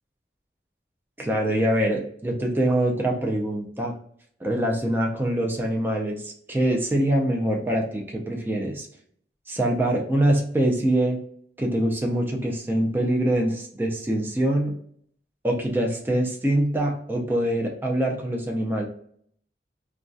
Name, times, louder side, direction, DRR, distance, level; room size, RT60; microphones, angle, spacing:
voice 1, 1.2-3.9 4.4-8.9 9.5-11.2 11.6-14.7 15.4-18.9, right 1 dB, 10° right, 0 dB, 0.4 m, -24 dB
2.3 x 2.2 x 2.5 m, 0.63 s
head